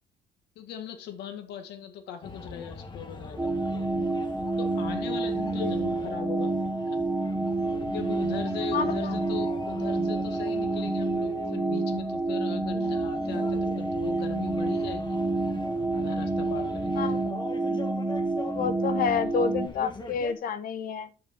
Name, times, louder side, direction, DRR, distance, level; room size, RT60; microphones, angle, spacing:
voice 1, 0.6-4.0 4.6-7.0 7.8-15.2 15.9-17.2, left 9 dB, 80° left, 7 dB, 2.0 m, -40 dB
sound 1, 2.2-20.3, left 3 dB, 25° left, 1.7 m, -42 dB
sound 2, 3.4-19.7, right 2 dB, 10° right, 1.6 m, -28 dB
voice 2, 8.7-9.2 17.0-17.2 18.5-21.1, left 6 dB, 60° left, 12 dB, 1.2 m, -29 dB
10.0 x 6.9 x 3.7 m, 0.34 s
cardioid pair, 110°, 17 cm